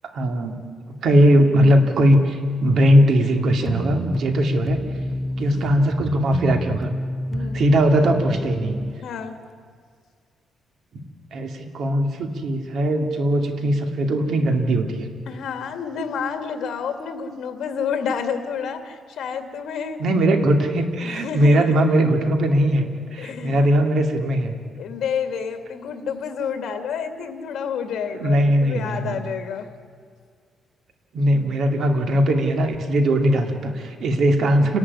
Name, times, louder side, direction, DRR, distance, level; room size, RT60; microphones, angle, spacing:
voice 1, 0.1-0.6 0.9-4.8 5.4-6.9 7.5-8.8 11.3-15.1 20.0-24.5 28.1-29.2 31.1-34.8, equal, 60° right, 5 dB, 2.6 m, -19 dB
sound 1, 3.6-9.0, equal, 10° right, 0.5 m, -28 dB
voice 2, 5.4-5.7 7.3-7.6 9.0-9.4 15.3-20.0 21.0-21.7 23.2-23.7 24.8-29.7, left 6 dB, 65° left, 7 dB, 2.4 m, -29 dB
29.0 x 11.5 x 9.8 m, 2.1 s
cardioid pair, 135°, 0 cm